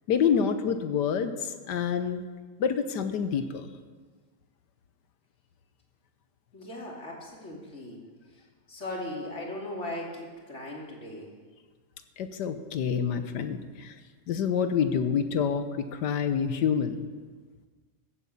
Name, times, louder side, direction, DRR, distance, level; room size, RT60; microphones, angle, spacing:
voice 1, 0.1-2.2 2.6-3.7 12.2-14.0 14.3-17.0, left 7 dB, 80° left, 9 dB, 1.4 m, -27 dB
voice 2, 6.5-8.0 8.3-11.3, left 1 dB, 40° left, -2 dB, 2.9 m, -38 dB
15.0 x 8.3 x 7.0 m, 1.4 s
omnidirectional pair, 1.8 m